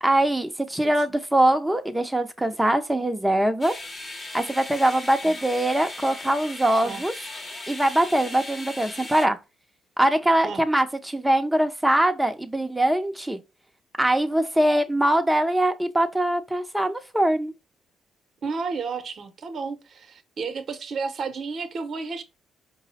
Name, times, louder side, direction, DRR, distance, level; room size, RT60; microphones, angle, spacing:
voice 1, 0.0-3.7 4.3-7.1 7.7-9.4 10.0-13.4 14.0-17.5, right 1 dB, 10° right, 0.6 m, -22 dB
sound 1, 3.6-9.3, left 2 dB, 20° left, 0.9 m, -38 dB
voice 2, 18.4-22.2, right 4 dB, 50° right, 0.7 m, -32 dB
4.6 x 2.1 x 4.1 m
cardioid pair, 90°, 0 cm